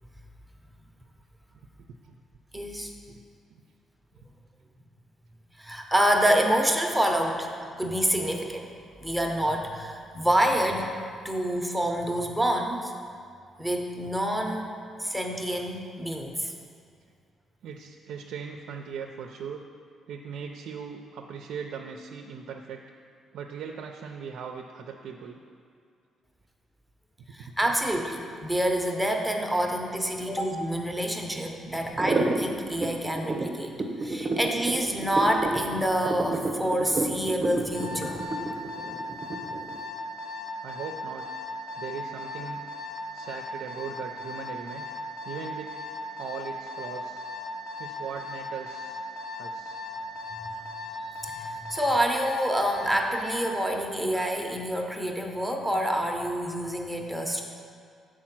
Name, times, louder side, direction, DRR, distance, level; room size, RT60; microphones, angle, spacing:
voice 1, 2.5-2.9 5.6-8.7 9.0-10.9 11.2-12.9 13.6-14.7 15.0-16.5 27.3-33.7 34.0-38.3 50.3-50.5 51.2-57.4, equal, 5° right, 2 dB, 0.7 m, -27 dB
voice 2, 17.6-19.6 20.1-22.8 23.3-25.4 27.4-27.8 40.6-41.2 41.7-42.6 43.1-44.9 45.2-45.7 46.2-47.2 47.8-49.0 49.4-49.8, right 6 dB, 75° right, 3 dB, 0.4 m, -39 dB
sound 1, 31.9-39.8, right 3 dB, 35° right, 0.8 m, -30 dB
Alarm, 37.7-53.5, left 3 dB, 75° left, 1.7 m, -38 dB
7.3 x 4.7 x 5.9 m, 2.3 s
cardioid pair, 90°, 0 cm